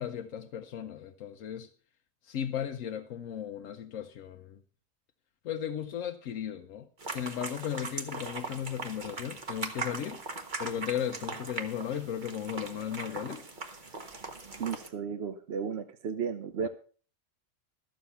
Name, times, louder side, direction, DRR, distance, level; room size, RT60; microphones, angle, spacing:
voice 1, 0.0-1.7 2.2-4.6 5.4-13.4 16.6-16.7, left 9 dB, 90° left, 1.1 m, -36 dB
sound 1, 7.0-14.9, right 3 dB, 40° right, 1.4 m, -40 dB
voice 2, 14.6-16.7, right 6 dB, 60° right, 1.0 m, -34 dB
13.0 x 7.5 x 5.5 m
omnidirectional pair, 1.3 m